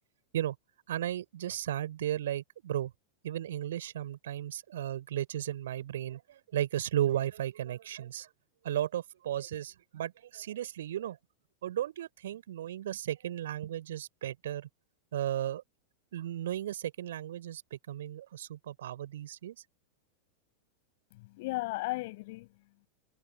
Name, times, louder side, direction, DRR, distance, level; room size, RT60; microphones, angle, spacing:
voice 1, 0.9-2.9 3.2-8.3 8.6-11.2 11.6-14.7 15.1-15.6 16.1-19.6, right 12 dB, 60° right, 4.1 m, -35 dB
voice 2, 21.1-22.9, left 22 dB, 50° left, 6.4 m, -36 dB
figure-of-eight pair, 90°, 0 cm